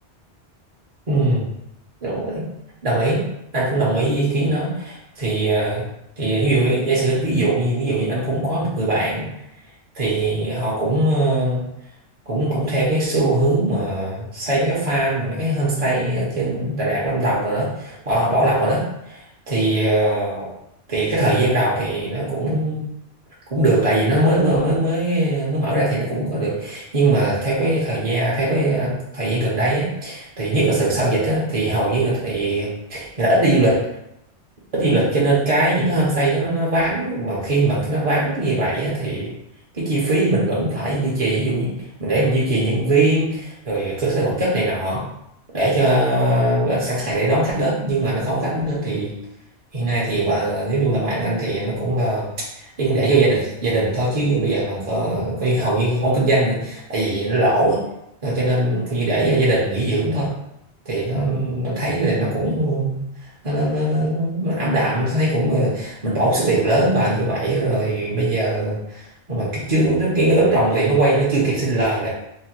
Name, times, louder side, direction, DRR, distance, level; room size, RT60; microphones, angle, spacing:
voice 1, 1.1-1.5 2.0-2.4 2.8-3.2 3.5-5.8 6.2-9.3 9.9-11.6 12.3-20.5 20.9-22.8 23.5-33.8 34.7-39.3 39.7-41.7 42.0-45.0 45.5-49.1 49.7-52.3 52.5-57.8 58.2-60.3 60.9-63.0 63.4-72.1, right 2 dB, 45° right, -5 dB, 0.6 m, -21 dB
3.1 x 2.1 x 2.8 m, 0.81 s
omnidirectional pair, 1.1 m